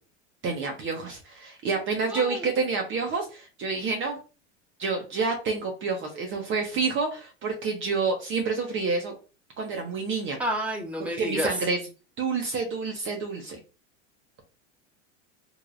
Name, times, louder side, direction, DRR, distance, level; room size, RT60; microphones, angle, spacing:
voice 1, 0.4-4.2 4.8-9.1 9.6-10.4 11.2-11.8 12.2-13.6, right 4 dB, 35° right, 2 dB, 0.9 m, -28 dB
voice 2, 2.1-2.5 10.4-11.6, equal, 5° right, -1 dB, 1.3 m, -30 dB
3.6 x 3.2 x 2.5 m, 0.33 s
hypercardioid pair, 100°, 35 cm